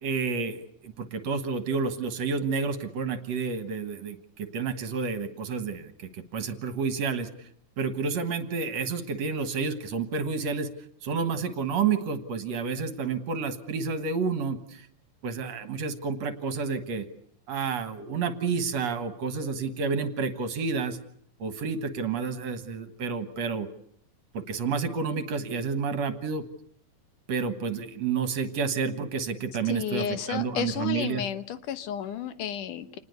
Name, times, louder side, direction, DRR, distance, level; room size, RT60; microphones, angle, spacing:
voice 1, 0.0-7.5 7.8-10.7 11.0-14.9 15.2-17.1 17.5-21.0 21.4-23.7 24.3-26.4 27.3-31.2, right 5 dB, 60° right, 10 dB, 2.6 m, -30 dB
voice 2, 29.7-33.0, left 9 dB, 75° left, 12 dB, 2.7 m, -32 dB
28.0 x 20.0 x 8.1 m, 0.65 s
omnidirectional pair, 3.7 m